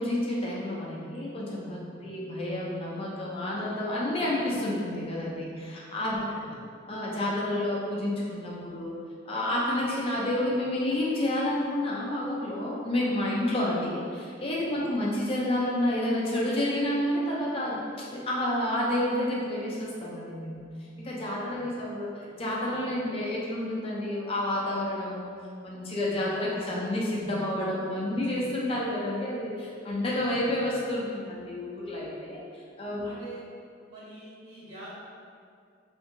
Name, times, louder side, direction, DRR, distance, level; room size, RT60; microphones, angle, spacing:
voice 1, 0.0-6.2 6.9-8.9 9.3-20.7 21.0-25.3 25.6-32.4 32.8-33.1, left 1 dB, 30° left, -5 dB, 0.4 m, -30 dB
voice 2, 6.1-6.6 21.5-21.8 33.0-33.4 33.9-34.9, right 1 dB, 90° right, -11 dB, 1.2 m, -45 dB
2.7 x 2.5 x 2.6 m, 2.2 s
head